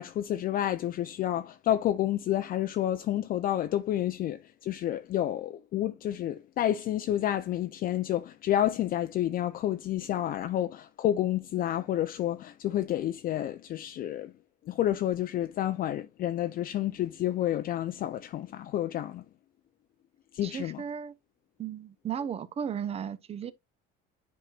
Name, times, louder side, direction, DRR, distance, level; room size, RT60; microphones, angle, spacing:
voice 1, 0.0-14.3 14.7-19.2 20.3-20.8, left 12 dB, 45° left, 0.5 m, -29 dB
voice 2, 20.4-21.1 21.6-23.5, right 8 dB, 30° right, 0.6 m, -35 dB
10.0 x 4.7 x 2.4 m
cardioid pair, 125°, 20 cm